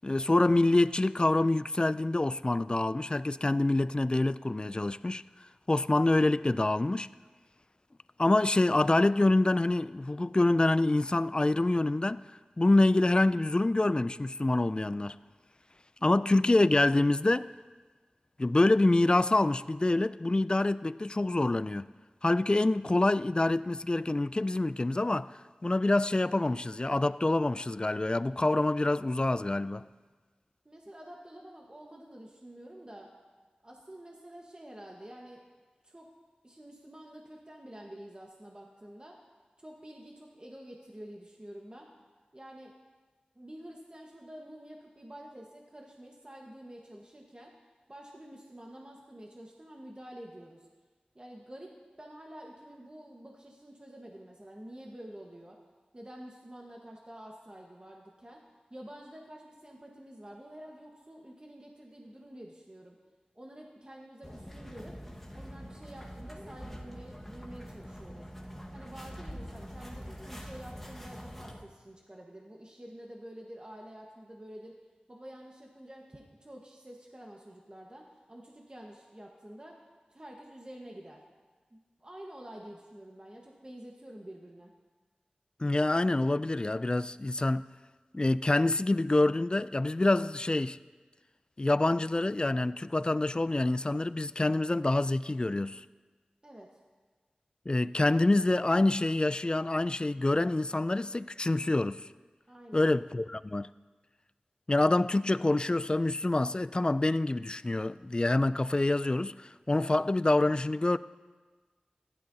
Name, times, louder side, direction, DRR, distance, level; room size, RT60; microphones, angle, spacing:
voice 1, 0.0-5.2 5.7-7.1 8.2-12.3 12.6-15.2 16.0-17.5 18.4-21.9 22.2-25.3 25.6-29.8 85.6-87.7 88.1-90.8 91.6-95.8 97.7-102.1 102.7-103.7 104.7-111.0, left 2 dB, 35° left, 0.3 m, -26 dB
voice 2, 30.6-33.1 33.6-35.4 35.8-36.1 36.4-39.2 39.6-41.9 42.3-42.7 43.3-47.5 47.9-50.7 51.1-55.6 55.9-58.4 58.7-63.0 63.3-65.0 65.3-68.3 68.7-74.7 75.1-79.8 80.1-81.2 81.7-84.7 96.4-96.7 102.5-102.9, right 1 dB, 35° right, 1.3 m, -48 dB
sound 1, 64.2-71.6, equal, 5° left, 1.5 m, -44 dB
15.5 x 12.0 x 2.8 m
cardioid pair, 40°, 3 cm